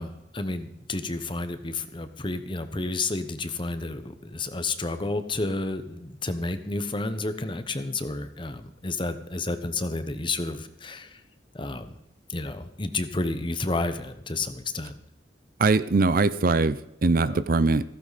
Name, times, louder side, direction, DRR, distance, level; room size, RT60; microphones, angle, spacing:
voice 1, 0.0-11.2 11.5-11.9 12.3-14.9 17.3-17.4, left 2 dB, 30° left, 10 dB, 1.1 m, -31 dB
voice 2, 15.6-17.8, right 3 dB, 50° right, 15 dB, 0.6 m, -22 dB
15.5 x 14.5 x 4.2 m, 0.86 s
head